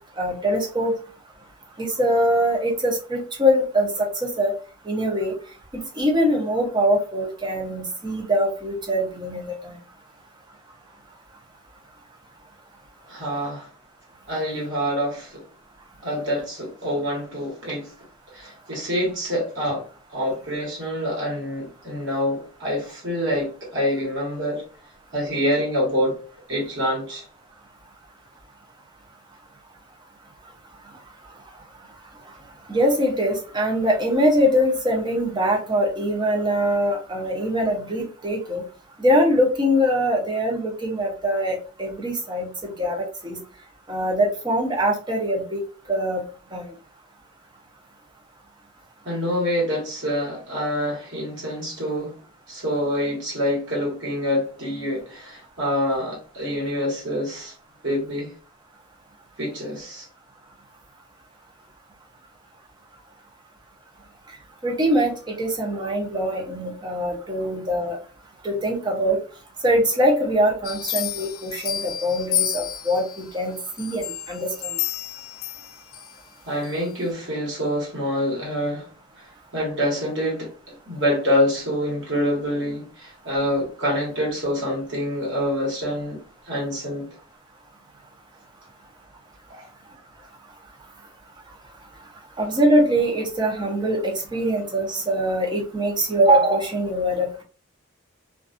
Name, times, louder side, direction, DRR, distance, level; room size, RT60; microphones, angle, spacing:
voice 1, 0.2-0.9 1.8-4.5 4.9-5.4 6.0-9.8 32.7-38.6 39.0-43.4 43.9-45.6 45.9-46.2 46.5-46.7 64.6-68.0 68.4-69.2 69.6-74.7 92.4-97.4, equal, 20° right, 0.6 m, -23 dB
voice 2, 13.1-13.7 14.3-15.4 16.0-17.9 18.3-24.6 25.1-26.2 26.5-27.2 49.0-52.1 52.5-57.5 57.8-58.3 59.4-60.1 76.5-78.9 79.2-79.3 79.5-86.2 86.5-87.1 89.5-89.7, equal, 60° right, 1.3 m, -26 dB
sound 1, 70.6-73.2 73.8-76.1 76.6-76.7, left 11 dB, 75° left, 0.4 m, -30 dB
2.5 x 2.3 x 2.5 m
head